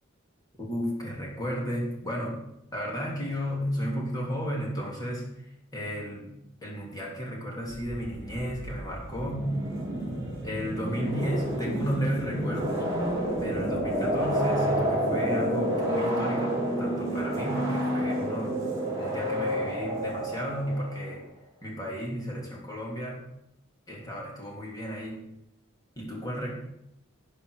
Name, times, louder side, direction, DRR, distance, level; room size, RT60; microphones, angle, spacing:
voice 1, 0.6-2.4 2.7-5.3 5.7-9.5 10.4-12.8 13.4-18.6 19.0-21.2 21.6-23.2 23.9-25.2 26.0-26.5, equal, 20° left, -3 dB, 3.2 m, -33 dB
sound 1, 7.7-21.1, right 1 dB, 15° right, 4.9 m, -29 dB
11.0 x 10.5 x 5.1 m, 0.80 s
head